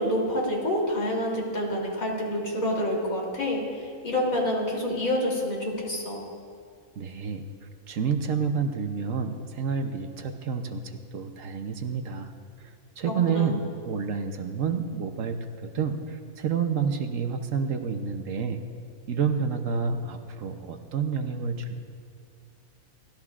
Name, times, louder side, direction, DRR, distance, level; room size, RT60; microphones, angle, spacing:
voice 1, 0.0-6.2 13.3-13.5, left 1 dB, 65° left, -3 dB, 3.6 m, -27 dB
voice 2, 7.0-7.5 7.9-12.3 12.6-18.6 19.1-21.8, right 6 dB, 65° right, 6 dB, 1.1 m, -29 dB
29.5 x 13.0 x 2.5 m, 2.2 s
omnidirectional pair, 1.5 m